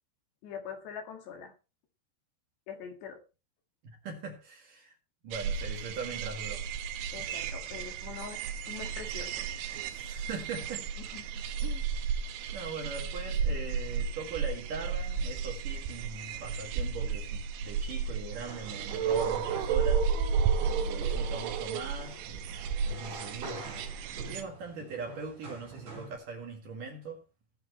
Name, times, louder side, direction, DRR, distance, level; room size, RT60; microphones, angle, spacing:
voice 1, 0.4-1.5 2.7-3.2 7.1-9.5 11.0-11.9, left 7 dB, 65° left, 3.8 m, -44 dB
voice 2, 3.8-4.9 5.2-6.6 9.9-10.9 11.2-11.4 12.5-27.2, right 4 dB, 55° right, 3.0 m, -41 dB
sound 1, 5.3-24.4, right 6 dB, 80° right, 3.4 m, -33 dB
sound 2, 18.3-26.2, right 3 dB, 35° right, 5.4 m, -46 dB
19.0 x 7.4 x 3.1 m
omnidirectional pair, 5.4 m